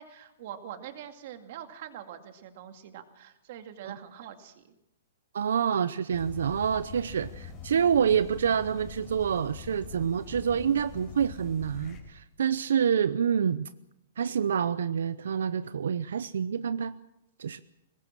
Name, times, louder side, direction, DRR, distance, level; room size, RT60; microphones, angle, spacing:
voice 1, 0.0-4.7, right 10 dB, 40° right, 7 dB, 2.3 m, -44 dB
voice 2, 5.3-13.7 14.2-17.0 17.4-17.6, right 7 dB, 80° right, 14 dB, 0.7 m, -27 dB
sound 1, 6.1-12.0, left 4 dB, 20° left, 4.5 m, -44 dB
22.5 x 20.0 x 7.6 m, 0.89 s
hypercardioid pair, 175°, 0 cm